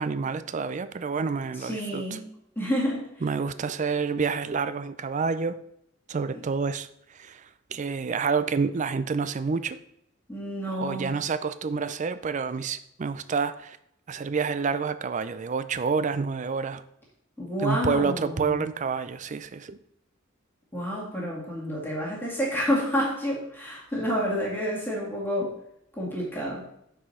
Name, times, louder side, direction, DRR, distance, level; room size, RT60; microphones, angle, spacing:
voice 1, 0.0-2.2 3.2-5.6 6.1-6.9 7.1-7.4 7.7-9.8 10.8-13.8 14.1-16.8 17.6-19.8, right 5 dB, 40° right, 13 dB, 0.4 m, -28 dB
voice 2, 1.5-2.2 2.6-3.0 10.3-11.1 17.4-18.6 20.7-25.5 25.9-26.6, equal, 10° left, -5 dB, 2.1 m, -29 dB
6.1 x 4.9 x 5.5 m, 0.75 s
head